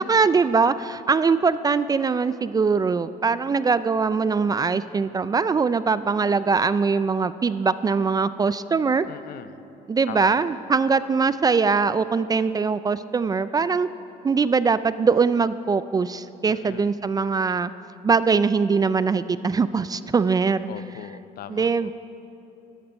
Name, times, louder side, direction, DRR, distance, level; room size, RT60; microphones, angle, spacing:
voice 1, 0.0-9.1 9.9-13.9 14.2-17.7 18.0-20.7 21.5-21.9, right 5 dB, 20° right, 14 dB, 0.3 m, -22 dB
voice 2, 9.0-9.6 10.1-10.4 16.5-16.9 20.7-21.9, left 11 dB, 65° left, 13 dB, 0.6 m, -40 dB
13.0 x 12.5 x 5.3 m, 3.0 s
cardioid pair, 110°, 17 cm